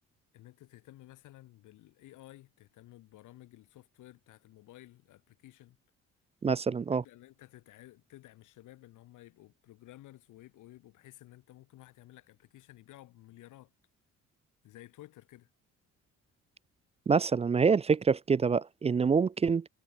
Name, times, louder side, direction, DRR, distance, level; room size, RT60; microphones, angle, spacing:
voice 1, 0.3-5.8 6.9-13.7 14.6-15.5, left 15 dB, 85° left, 1.7 m, -54 dB
voice 2, 6.4-7.0 17.1-19.7, right 5 dB, 20° right, 0.3 m, -26 dB
cardioid pair, 90°, 30 cm